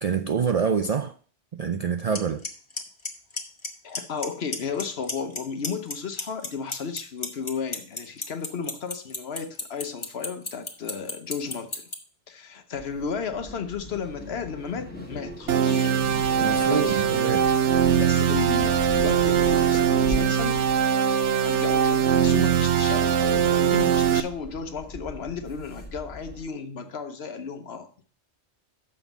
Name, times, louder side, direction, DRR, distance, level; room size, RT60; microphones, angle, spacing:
voice 1, 0.0-1.1 1.5-2.4 16.4-17.5, right 6 dB, 60° right, 0.4 m, -26 dB
Clock, 2.1-2.2 2.4-2.8 3.0-3.7 3.9-4.3 4.5-5.4 5.6-11.9, left 3 dB, 25° left, 1.0 m, -30 dB
voice 2, 3.8-11.9 12.3-15.9 16.6-17.1 17.9-20.6 21.4-27.9, left 6 dB, 65° left, 1.1 m, -34 dB
sound 1, 12.7-26.5, left 1 dB, 10° left, 1.3 m, -40 dB
sound 2, 15.5-24.2, right 8 dB, 80° right, 1.0 m, -21 dB
6.9 x 5.4 x 7.1 m
omnidirectional pair, 1.2 m